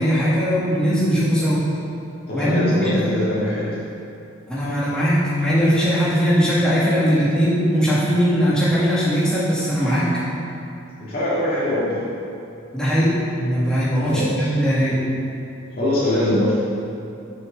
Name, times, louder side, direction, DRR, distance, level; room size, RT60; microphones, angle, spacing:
voice 1, 0.0-1.6 2.3-3.0 4.5-10.1 12.7-13.1 13.4-15.0, equal, 5° left, -10 dB, 2.0 m, -19 dB
voice 2, 2.3-3.8 11.0-12.2 14.0-14.5 15.8-16.6, left 1 dB, 45° left, -11 dB, 2.1 m, -23 dB
6.4 x 6.3 x 6.8 m, 2.7 s
head